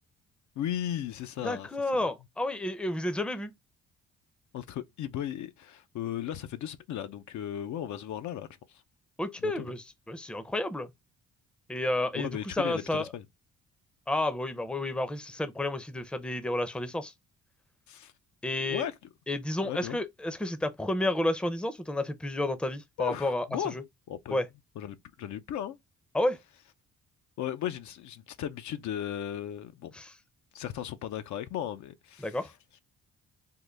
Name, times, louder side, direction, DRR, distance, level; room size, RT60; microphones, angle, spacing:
voice 1, 0.6-1.7 4.5-8.8 9.4-9.7 12.2-13.2 17.9-18.1 18.7-18.9 19.6-20.0 23.0-23.8 24.1-24.4 24.8-25.8 27.4-29.9 30.5-32.3, left 10 dB, 70° left, 0.5 m, -36 dB
voice 2, 1.4-3.5 9.2-10.9 11.7-13.0 14.1-17.1 18.4-18.9 19.3-23.8 24.3-24.5 26.1-26.4 29.9-30.1 32.2-32.5, left 1 dB, 5° left, 0.5 m, -31 dB
3.7 x 2.1 x 3.2 m
cardioid pair, 90°, 30 cm